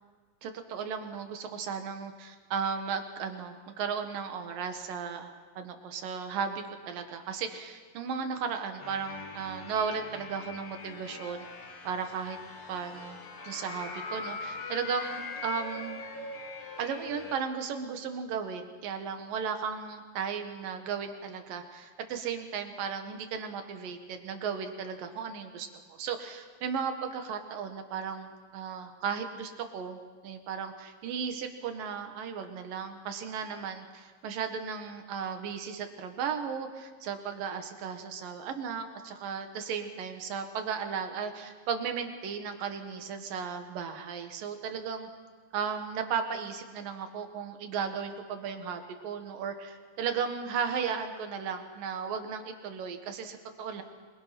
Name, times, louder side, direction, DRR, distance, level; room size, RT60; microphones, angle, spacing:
voice 1, 0.4-11.5 11.8-12.4 12.7-16.0 16.8-45.1 45.5-53.8, right 6 dB, 80° right, 6 dB, 3.3 m, -35 dB
sound 1, 8.8-17.4, left 4 dB, 50° left, 2.8 m, -42 dB
26.5 x 22.0 x 5.9 m, 1.5 s
omnidirectional pair, 3.9 m